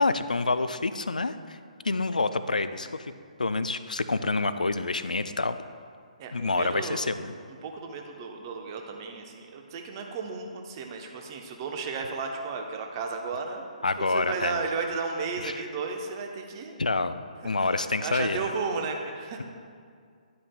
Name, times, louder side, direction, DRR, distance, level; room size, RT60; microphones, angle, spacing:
voice 1, 0.0-1.6 1.8-3.1 3.4-5.6 6.3-7.3 13.8-14.6 15.4-15.6 16.8-18.4, left 3 dB, 75° left, 12 dB, 0.4 m, -27 dB
voice 2, 6.2-7.0 7.6-13.7 14.0-16.8 17.4-19.4, right 4 dB, 30° right, 3 dB, 0.9 m, -34 dB
11.0 x 8.6 x 2.3 m, 2.2 s
figure-of-eight pair, 135°, 4 cm